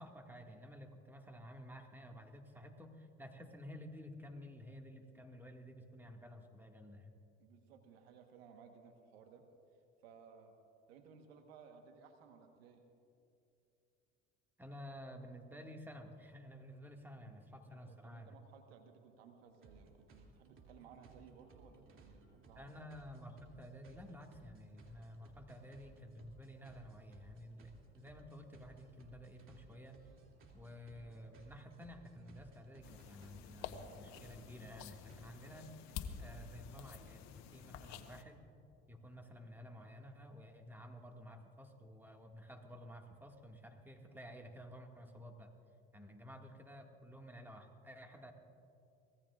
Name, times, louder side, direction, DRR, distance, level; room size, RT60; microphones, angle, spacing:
voice 1, 0.0-7.1 14.6-18.4 22.6-30.0 30.5-35.7 36.2-38.4 38.9-45.5 45.9-48.3, equal, 5° right, 2 dB, 1.9 m, -52 dB
voice 2, 7.4-9.4 10.0-10.5 10.9-12.8 17.5-22.7, right 6 dB, 85° right, 5 dB, 1.3 m, -60 dB
sound 1, 19.5-35.4, right 3 dB, 45° right, 2.6 m, -61 dB
sound 2, 32.8-38.2, left 7 dB, 65° left, 1.1 m, -50 dB
24.5 x 18.5 x 2.5 m, 2.7 s
hypercardioid pair, 70°, 30 cm